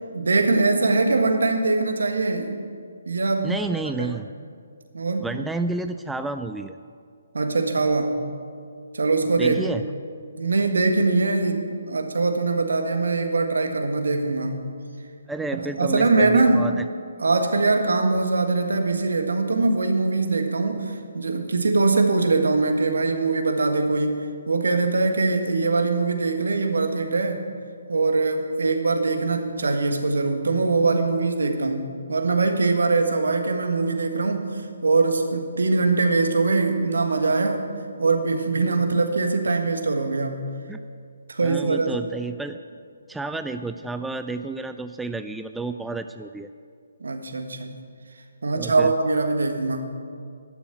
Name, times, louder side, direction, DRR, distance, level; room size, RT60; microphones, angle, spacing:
voice 1, 0.1-2.6 3.1-3.6 4.0-4.1 4.9-5.3 7.3-8.1 8.9-9.7 10.4-14.7 15.8-16.6 17.2-27.4 27.9-34.5 34.8-37.6 38.0-40.4 41.3-41.9 47.0-47.7 48.4-49.9, right 3 dB, 70° right, 5 dB, 1.6 m, -22 dB
voice 2, 3.4-4.3 5.2-6.8 9.4-9.8 15.3-16.8 40.7-40.8 41.4-42.6 43.1-46.5 48.5-48.9, right 3 dB, 5° right, 8 dB, 0.3 m, -30 dB
12.0 x 7.0 x 9.2 m, 2.2 s
figure-of-eight pair, 140°, 0 cm